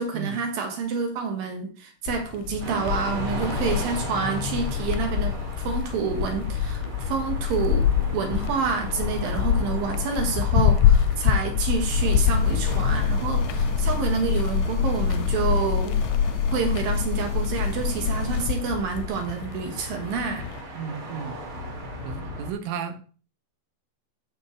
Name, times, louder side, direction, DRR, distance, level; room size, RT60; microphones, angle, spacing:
voice 1, 0.0-7.8 8.1-16.0 16.5-20.5, right 5 dB, 65° right, 4 dB, 2.5 m, -28 dB
sound 1, 2.1-20.6, left 10 dB, 90° left, 3.0 m, -27 dB
sound 2, 2.6-22.5, equal, 40° right, 2.0 m, -37 dB
sound 3, 11.9-18.5, left 5 dB, 70° left, 1.6 m, -25 dB
voice 2, 20.8-21.4 22.1-23.0, right 7 dB, 85° right, 9 dB, 3.4 m, -33 dB
15.0 x 5.6 x 3.1 m, 0.40 s
omnidirectional pair, 5.3 m